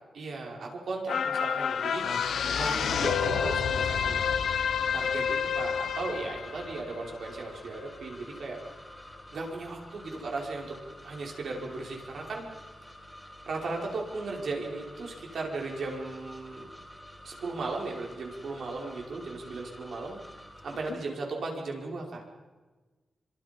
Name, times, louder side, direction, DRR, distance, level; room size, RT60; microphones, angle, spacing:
voice 1, 0.1-2.3 2.5-4.3 4.9-8.6 9.3-10.8 11.0-12.4 13.5-16.7 17.2-20.2 20.6-22.2, right 3 dB, 70° right, 0 dB, 5.4 m, -36 dB
sound 1, 1.1-7.7 8.1-8.2, left 7 dB, 85° left, 1.1 m, -29 dB
voice 2, 2.0-2.8 20.9-21.0, left 6 dB, 65° left, 9 dB, 1.6 m, -42 dB
sound 2, 3.6-21.0, equal, ahead, 4.0 m, -49 dB
26.0 x 25.5 x 5.4 m, 1.3 s
wide cardioid pair, 135°, 0 cm